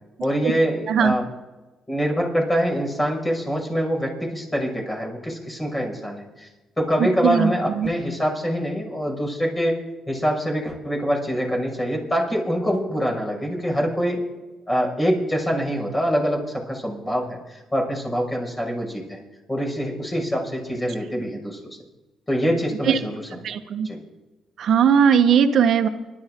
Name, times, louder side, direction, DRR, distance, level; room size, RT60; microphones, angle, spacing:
voice 1, 0.2-1.3 1.9-6.2 6.8-9.8 10.1-14.3 14.7-19.2 19.5-21.6 22.3-23.2 23.8-24.0, equal, 15° left, 0 dB, 5.9 m, -24 dB
voice 2, 7.0-7.9 22.8-23.0 23.4-23.9 24.6-25.9, right 7 dB, 65° right, 7 dB, 1.5 m, -19 dB
25.5 x 12.5 x 3.8 m, 1.1 s
cardioid pair, 90°, 0 cm